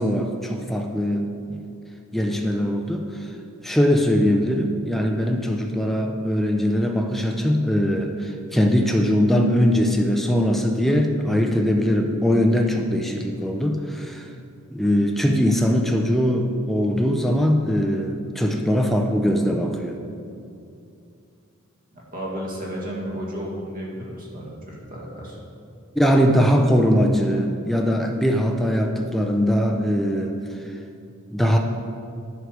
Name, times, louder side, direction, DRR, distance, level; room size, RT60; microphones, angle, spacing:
voice 1, 0.0-1.6 2.1-3.1 3.6-14.3 14.7-20.0 26.0-30.4 31.3-31.6, equal, ahead, 2 dB, 0.5 m, -21 dB
voice 2, 21.9-25.4, equal, 40° right, -3 dB, 1.8 m, -33 dB
9.7 x 4.8 x 6.3 m, 2.5 s
head